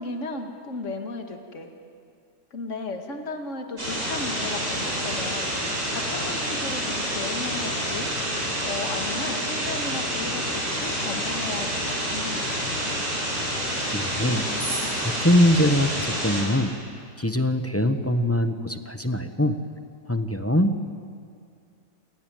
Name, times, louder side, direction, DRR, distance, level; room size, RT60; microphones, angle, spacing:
voice 1, 0.0-1.7 2.5-8.1 8.6-12.8, left 3 dB, 45° left, 4 dB, 2.3 m, -35 dB
sound 1, 3.8-16.4, equal, 70° right, 8.3 m, -28 dB
voice 2, 13.9-14.4 15.0-16.7 17.2-19.6 20.1-20.7, left 1 dB, 10° left, 8 dB, 0.8 m, -22 dB
28.5 x 20.5 x 9.2 m, 2.3 s
omnidirectional pair, 1.8 m